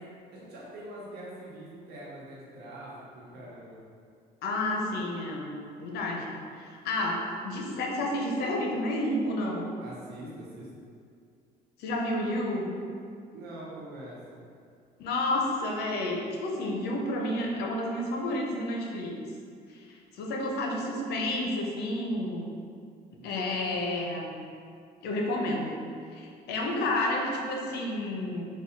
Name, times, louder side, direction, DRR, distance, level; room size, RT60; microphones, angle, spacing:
voice 1, 0.3-3.8 9.8-10.7 13.3-14.4, right 1 dB, 75° right, -5 dB, 1.2 m, -44 dB
voice 2, 4.4-5.5 5.8-9.7 11.8-12.7 15.0-19.2 19.7-22.5 23.2-24.4 25.0-25.8 26.1-28.4, left 1 dB, 75° left, 0 dB, 0.7 m, -30 dB
4.1 x 2.3 x 4.5 m, 2.3 s
cardioid pair, 110°, 17 cm